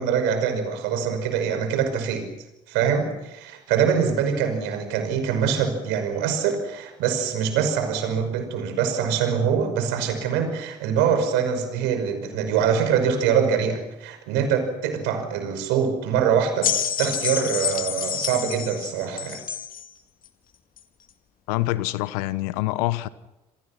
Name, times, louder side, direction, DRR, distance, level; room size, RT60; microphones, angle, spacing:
voice 1, 0.0-2.3 2.7-16.7 17.0-19.4, right 7 dB, 65° right, 5.7 m, -24 dB
sound 1, 16.6-19.9 20.8-20.9, left 9 dB, 45° left, 2.2 m, -28 dB
voice 2, 21.5-23.1, left 18 dB, 70° left, 1.1 m, -25 dB
28.5 x 26.0 x 5.9 m
figure-of-eight pair, 55°, 20 cm